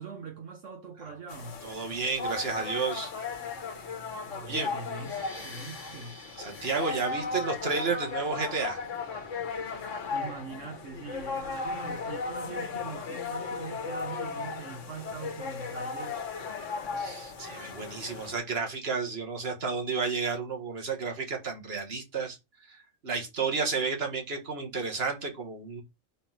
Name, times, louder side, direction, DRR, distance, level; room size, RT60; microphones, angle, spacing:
voice 1, 0.0-1.6 4.3-6.2 10.1-16.2, right 5 dB, 70° right, 1.6 m, -42 dB
sound 1, 1.3-18.4, left 4 dB, 70° left, 1.5 m, -36 dB
voice 2, 1.6-3.1 4.4-4.7 6.4-8.8 17.0-25.8, right 4 dB, 50° right, 1.9 m, -32 dB
sound 2, 4.8-10.1, equal, 30° right, 2.3 m, -52 dB
5.8 x 4.2 x 5.8 m
omnidirectional pair, 1.4 m